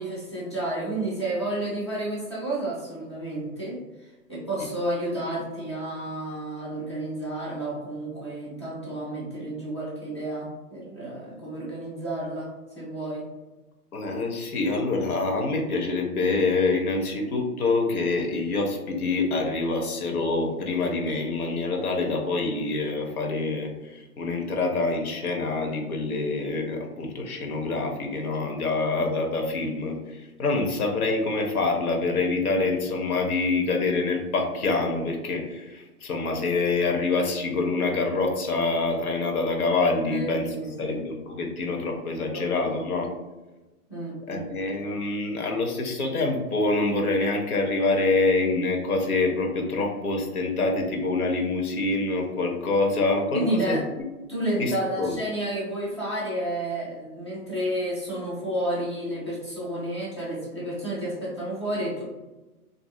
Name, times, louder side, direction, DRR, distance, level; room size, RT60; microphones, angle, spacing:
voice 1, 0.0-3.8 4.3-12.5 12.8-13.3 40.0-41.1 42.3-42.8 43.9-44.5 53.3-53.8 54.3-62.0, right 1 dB, 20° left, -6 dB, 0.3 m, -31 dB
voice 2, 13.9-40.5 40.8-43.1 44.3-54.1 54.6-55.2, left 3 dB, 70° left, 2 dB, 0.8 m, -26 dB
2.7 x 2.6 x 2.5 m, 1.1 s
hypercardioid pair, 140°, 46 cm